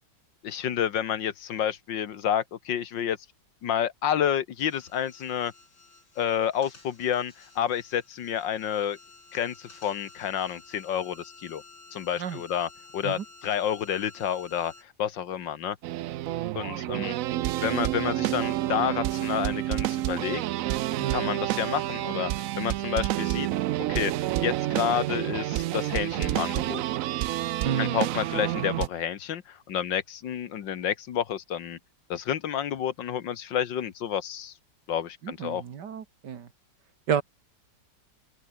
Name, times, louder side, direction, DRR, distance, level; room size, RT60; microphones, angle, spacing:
voice 1, 0.4-3.2 3.6-5.5 6.2-9.0 9.3-11.6 11.9-15.8 16.5-17.2 17.6-20.4 21.1-22.3 22.6-23.5 23.9-24.1 24.4-26.8 27.8-31.8 32.1-34.5 34.9-35.6, left 9 dB, 85° left, 1.9 m, -29 dB
sound 1, 4.6-14.8, left 3 dB, 65° left, 5.3 m, -52 dB
sound 2, 15.8-28.9, right 15 dB, 90° right, 0.7 m, -29 dB
voice 2, 21.0-21.3 27.6-28.1 35.2-36.5 37.1-37.2, right 7 dB, 65° right, 2.1 m, -31 dB
open air
omnidirectional pair, 2.0 m